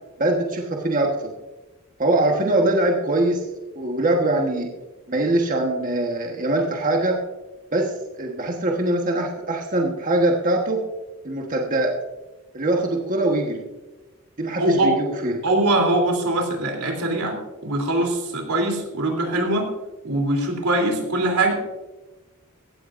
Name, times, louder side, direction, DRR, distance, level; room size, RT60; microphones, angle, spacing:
voice 1, 0.2-1.3 2.0-3.5 3.7-4.7 5.1-7.2 7.7-10.8 11.2-11.9 12.5-13.6 14.4-15.4, right 2 dB, 40° right, 1 dB, 1.3 m, -22 dB
voice 2, 14.6-14.9 15.4-17.4 17.6-19.7 20.0-21.5, right 2 dB, 85° right, 2 dB, 3.3 m, -22 dB
17.0 x 13.5 x 2.6 m, 1.1 s
head